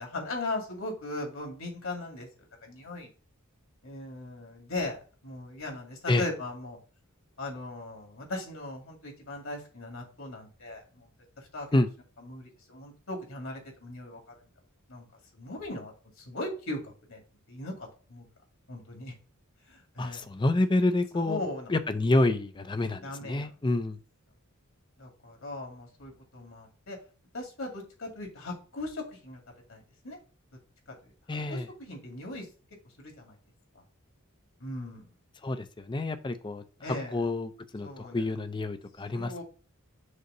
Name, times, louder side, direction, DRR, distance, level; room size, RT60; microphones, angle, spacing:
voice 1, 0.0-2.3 2.6-3.1 3.8-6.8 7.4-11.1 11.4-11.7 12.2-14.3 14.9-15.0 15.3-15.9 16.2-17.2 17.5-18.3 18.7-19.1 19.7-20.2 21.1-21.7 23.0-23.5 25.0-27.0 27.3-29.4 29.7-30.2 31.0-31.1 31.5-32.5 33.0-33.4 34.6-35.1 36.8-37.2 37.8-38.2 39.1-39.4, left 2 dB, 65° left, 1 dB, 2.1 m, -38 dB
voice 2, 20.0-21.4 21.7-24.0 31.3-31.7 35.4-36.6 37.1-39.3, left 2 dB, 20° left, 10 dB, 0.5 m, -28 dB
6.6 x 2.9 x 5.3 m, 0.36 s
head